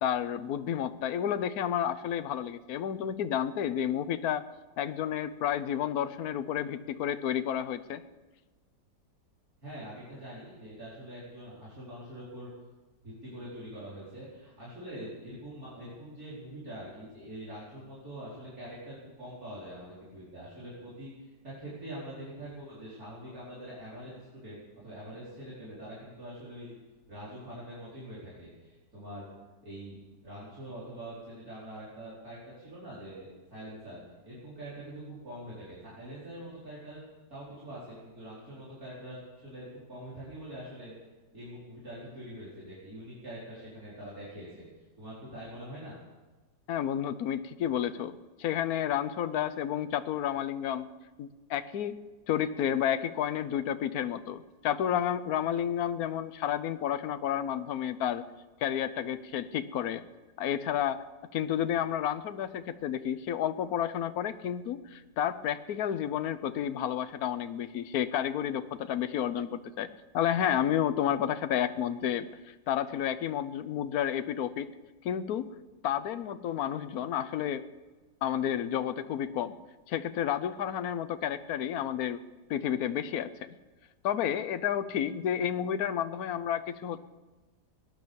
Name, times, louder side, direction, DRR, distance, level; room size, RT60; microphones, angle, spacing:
voice 1, 0.0-4.4 4.8-8.0 46.7-50.9 51.2-51.9 52.3-58.2 58.6-60.0 60.4-61.0 61.3-69.9 70.1-74.7 75.0-75.5 75.8-77.6 78.2-79.6 79.9-82.2 82.5-83.3 84.0-87.0, left 10 dB, 60° left, 12 dB, 1.2 m, -31 dB
voice 2, 9.6-12.5 13.0-21.1 21.4-26.8 27.1-29.2 29.6-30.0 30.2-37.0 37.3-40.9 41.3-44.7 45.0-46.0, right 1 dB, 50° right, -9 dB, 5.2 m, -44 dB
19.0 x 10.5 x 7.0 m, 1.2 s
omnidirectional pair, 1.9 m